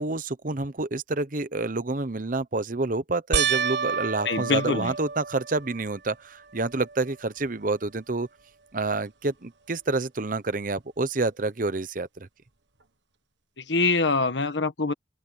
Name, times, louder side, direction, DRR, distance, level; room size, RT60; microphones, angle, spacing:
voice 1, 0.0-8.3 8.7-12.3, right 3 dB, 50° right, 1.0 m, -28 dB
sound 1, 3.3-5.9 6.5-7.1 7.5-7.6 10.8-10.9, right 7 dB, 90° right, 1.5 m, -29 dB
voice 2, 4.2-4.9 13.6-14.9, left 3 dB, 85° left, 1.5 m, -24 dB
head